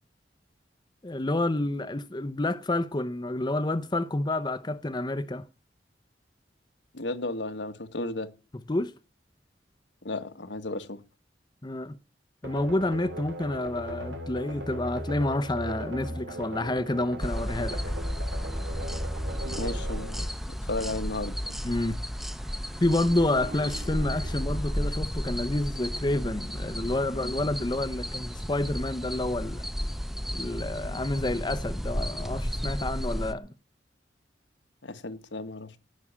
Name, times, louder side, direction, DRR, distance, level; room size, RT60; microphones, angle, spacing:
voice 1, 1.0-5.4 8.7-8.9 11.6-12.0 12.4-17.8 21.6-22.0 22.8-29.7 30.3-33.5, left 1 dB, 25° left, 0.7 m, -29 dB
voice 2, 6.9-8.3 10.0-11.0 19.4-21.6 34.8-35.7, left 2 dB, 85° left, 1.5 m, -34 dB
sound 1, 12.4-21.1, right 1 dB, 85° right, 2.8 m, -39 dB
sound 2, 15.7-25.0, right 1 dB, 65° right, 6.8 m, -49 dB
sound 3, 17.2-33.3, equal, ahead, 0.8 m, -33 dB
18.5 x 6.3 x 8.5 m
head